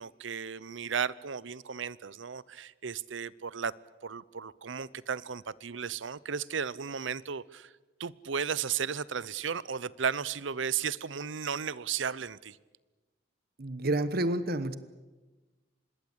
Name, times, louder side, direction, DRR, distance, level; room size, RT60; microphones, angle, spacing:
voice 1, 0.0-3.7 4.0-7.7 8.0-12.6, right 7 dB, 70° right, 20 dB, 0.7 m, -34 dB
voice 2, 13.6-14.7, right 1 dB, 55° right, 13 dB, 1.1 m, -29 dB
25.5 x 20.5 x 8.2 m, 1.2 s
head